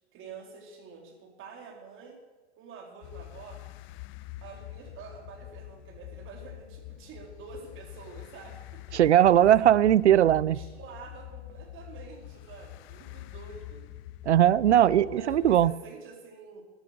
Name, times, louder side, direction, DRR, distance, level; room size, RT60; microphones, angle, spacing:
voice 1, 0.1-2.2 2.6-3.6 4.4-9.8 10.5-13.9 14.7-16.6, right 5 dB, 35° right, 3.6 m, -47 dB
sound 1, 3.0-15.7, left 16 dB, 35° left, 0.6 m, -45 dB
voice 2, 8.9-10.6 14.3-15.7, right 11 dB, 85° right, 0.5 m, -19 dB
13.5 x 11.5 x 6.5 m
hypercardioid pair, 95°, 34 cm